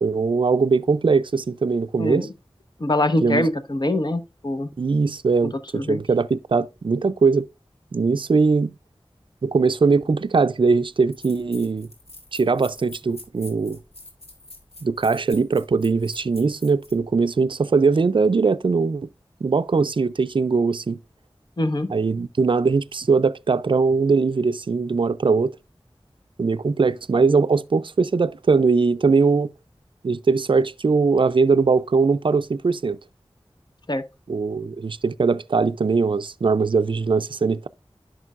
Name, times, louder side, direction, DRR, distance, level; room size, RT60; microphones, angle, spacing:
voice 1, 0.0-2.3 3.2-3.5 4.8-7.5 7.9-8.7 9.4-11.9 12.3-13.8 14.8-19.1 19.4-21.0 21.9-25.5 26.4-29.5 30.0-33.0 34.3-37.7, right 4 dB, 55° right, 0.4 m, -20 dB
voice 2, 2.0-2.3 2.8-4.7 5.7-6.0 21.6-21.9 33.9-34.0, left 1 dB, 45° left, 1.0 m, -23 dB
sound 1, 10.5-10.6 11.1-17.0, left 2 dB, 85° left, 2.2 m, -44 dB
11.0 x 6.1 x 2.4 m
wide cardioid pair, 50°, 10 cm